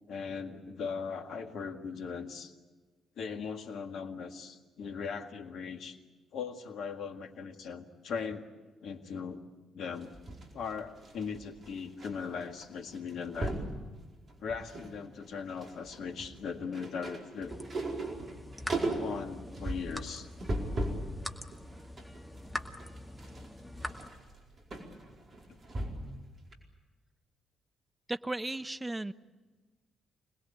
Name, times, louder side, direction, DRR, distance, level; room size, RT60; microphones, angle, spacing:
voice 1, 0.1-2.5 3.2-6.0 6.3-8.5 8.8-9.4 9.7-10.1 10.5-13.6 14.4-17.6 18.8-20.3 25.5-25.6, left 6 dB, 65° left, 6 dB, 1.8 m, -39 dB
sound 1, 9.9-12.1 12.4-12.6 12.9-13.7 14.3-14.9 15.2-21.1 21.5-26.2 26.5-26.6, right 2 dB, 45° right, 4.8 m, -37 dB
sound 2, 17.5-24.1, left 1 dB, 10° left, 2.1 m, -44 dB
voice 2, 28.1-29.1, right 2 dB, 15° right, 13 dB, 0.8 m, -35 dB
27.0 x 20.0 x 8.5 m, 1.3 s
hypercardioid pair, 40°, 0 cm